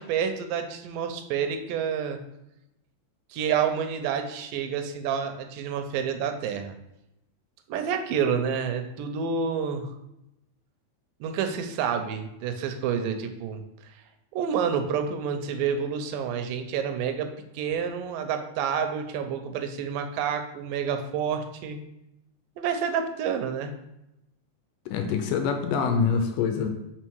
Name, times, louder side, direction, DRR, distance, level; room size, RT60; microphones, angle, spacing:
voice 1, 0.0-2.2 3.3-6.7 7.7-9.9 11.2-13.6 14.3-17.3 17.5-21.8 22.6-23.7, right 7 dB, 80° right, 6 dB, 2.2 m, -28 dB
voice 2, 24.9-26.7, left 6 dB, 80° left, 5 dB, 2.1 m, -25 dB
5.4 x 4.1 x 4.5 m, 0.86 s
omnidirectional pair, 4.1 m